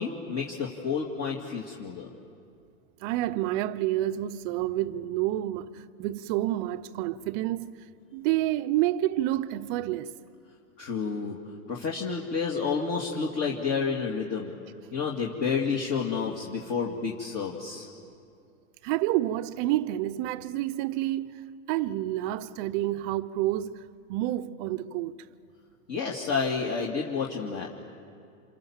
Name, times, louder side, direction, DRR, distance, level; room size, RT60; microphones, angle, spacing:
voice 1, 0.0-2.1 10.8-11.4 11.7-14.5 14.9-17.9 25.9-27.7, left 5 dB, 35° left, 2.4 m, -30 dB
voice 2, 3.0-7.8 8.1-10.1 18.8-25.1, right 14 dB, 35° right, 0.8 m, -29 dB
29.0 x 27.5 x 7.3 m
hypercardioid pair, 135°, 42 cm